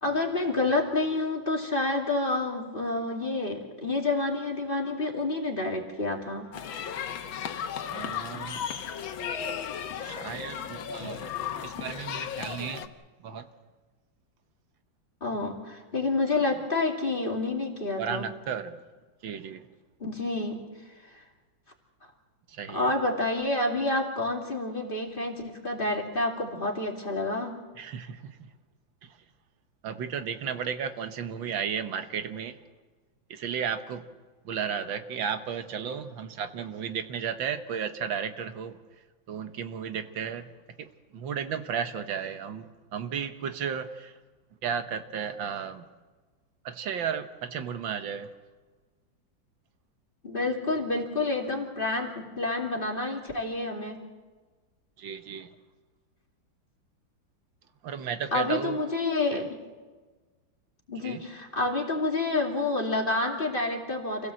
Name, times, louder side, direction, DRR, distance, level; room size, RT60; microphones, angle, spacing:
voice 1, 0.0-6.4 15.2-18.3 20.0-20.6 22.7-27.5 50.2-54.0 58.3-59.4 60.9-64.3, left 2 dB, 25° left, 1 dB, 2.6 m, -28 dB
sound 1, 6.5-12.9, left 8 dB, 85° left, 1.8 m, -35 dB
voice 2, 7.9-8.9 10.0-12.9 13.2-13.5 16.4-16.5 18.0-18.8 19.2-19.7 22.5-22.9 27.8-28.5 29.0-29.1 29.8-32.6 33.3-34.1 34.5-38.8 39.3-40.5 40.8-40.9 41.1-44.1 44.6-45.8 46.7-48.3 55.0-55.5 57.8-58.8 59.3-59.4 61.0-61.2, right 7 dB, 80° right, 9 dB, 1.8 m, -34 dB
27.0 x 17.0 x 7.7 m, 1.3 s
omnidirectional pair, 2.1 m